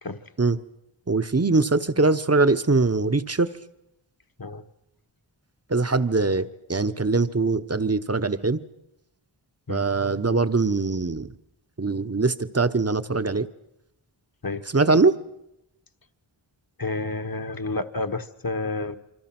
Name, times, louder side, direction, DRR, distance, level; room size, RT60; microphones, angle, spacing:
voice 1, 1.1-3.5 5.7-8.6 9.7-11.3 11.8-13.5 14.7-15.1, right 3 dB, 30° right, 12 dB, 1.1 m, -22 dB
voice 2, 16.8-19.0, left 3 dB, 50° left, 9 dB, 1.5 m, -30 dB
27.0 x 25.0 x 6.1 m, 0.86 s
wide cardioid pair, 55°, 46 cm